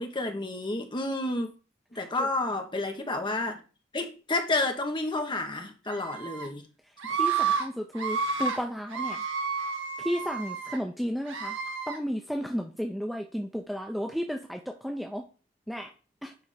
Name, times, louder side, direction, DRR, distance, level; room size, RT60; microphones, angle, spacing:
voice 1, 0.0-1.5 1.9-3.6 3.9-6.6, left 2 dB, 25° left, 1.1 m, -30 dB
voice 2, 1.9-2.3 7.1-9.3 10.0-11.6 11.9-15.2 15.7-15.9 16.2-16.3, equal, ahead, 0.6 m, -33 dB
Screaming, 5.9-6.5 7.0-7.6 7.9-8.6 8.9-10.8 11.3-12.0, right 6 dB, 70° right, 1.5 m, -30 dB
9.5 x 3.5 x 5.0 m
head